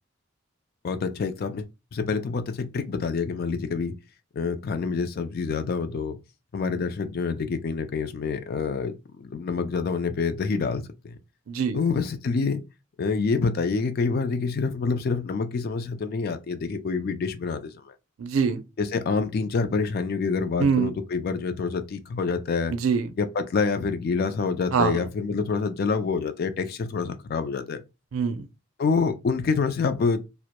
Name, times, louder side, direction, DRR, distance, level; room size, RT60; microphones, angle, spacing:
voice 1, 0.8-1.7 1.9-3.9 4.3-6.2 6.5-11.1 11.7-12.6 13.0-17.7 18.8-22.8 23.2-27.8 28.8-30.2, left 4 dB, 45° left, 0.3 m, -27 dB
voice 2, 11.5-11.8 18.2-18.6 20.6-20.9 22.7-23.1 24.7-25.0 28.1-28.5, right 6 dB, 90° right, 0.4 m, -23 dB
2.1 x 2.0 x 2.8 m
head